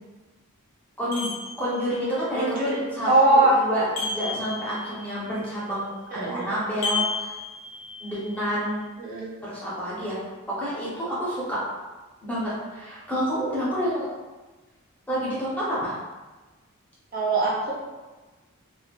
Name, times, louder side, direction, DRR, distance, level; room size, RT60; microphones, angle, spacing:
voice 1, 1.0-1.3 1.6-7.3 8.0-8.8 9.4-10.2 10.5-11.6 12.2-14.1 15.1-15.9, equal, 5° left, -9 dB, 0.8 m, -29 dB
sound 1, 1.1-2.1 4.0-5.2 6.8-8.3, left 4 dB, 75° left, 0.8 m, -32 dB
voice 2, 2.4-3.6 6.1-6.6 9.0-9.3 17.1-17.7, right 2 dB, 40° right, -6 dB, 0.6 m, -22 dB
3.3 x 2.6 x 2.4 m, 1.2 s
head